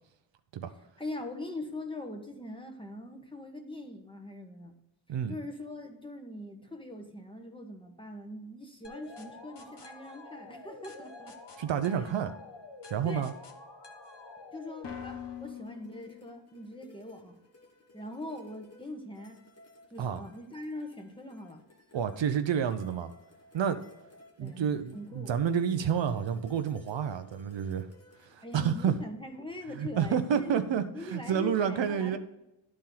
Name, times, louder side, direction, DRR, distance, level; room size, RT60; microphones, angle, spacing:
voice 1, 1.0-4.8 5.3-11.4 11.9-12.0 13.0-13.3 14.5-17.4 17.9-19.4 19.9-21.6 24.4-24.7 24.9-25.4 28.4-32.2, left 1 dB, 10° left, 3 dB, 1.2 m, -42 dB
sound 1, 8.8-16.6, left 5 dB, 55° left, 1.3 m, -46 dB
voice 2, 11.6-12.3 12.9-13.3 20.0-20.2 21.9-23.1 23.5-23.8 24.4-27.9 28.2-29.0 29.7-32.2, right 8 dB, 65° right, 9 dB, 0.7 m, -29 dB
sound 2, 15.4-29.0, left 3 dB, 30° left, 1.4 m, -58 dB
11.0 x 4.4 x 3.8 m, 0.90 s
cardioid pair, 80°, 49 cm